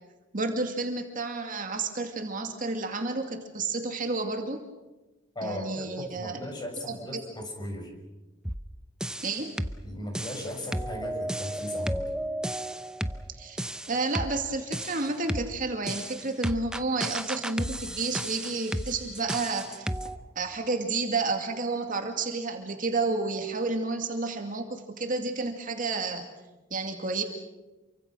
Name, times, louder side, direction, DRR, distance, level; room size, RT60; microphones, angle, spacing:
voice 1, 0.3-4.6 5.4-6.4 6.9-7.2 9.2-9.6 13.4-19.9 20.4-26.3 26.7-27.2, right 3 dB, 45° right, 4 dB, 2.3 m, -31 dB
voice 2, 5.3-7.9 9.8-12.0, left 1 dB, 20° left, 2 dB, 6.6 m, -37 dB
sound 1, 8.5-8.7 9.0-9.8 10.2-13.3 13.6-14.4 14.7-15.5 15.9-20.2, right 1 dB, 5° right, 0.7 m, -33 dB
28.5 x 24.5 x 6.3 m, 1.1 s
head